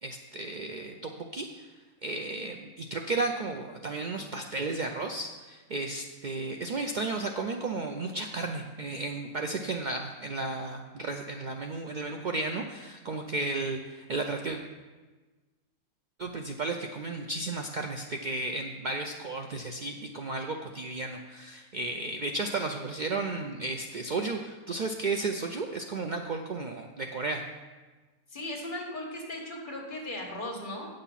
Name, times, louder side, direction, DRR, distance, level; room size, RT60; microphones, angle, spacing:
voice 1, 0.0-1.7 2.0-14.6 16.2-27.4, right 3 dB, 80° right, 4 dB, 0.4 m, -33 dB
voice 2, 28.3-30.9, left 1 dB, 35° left, -2 dB, 1.9 m, -37 dB
9.0 x 6.5 x 5.7 m, 1.3 s
omnidirectional pair, 1.5 m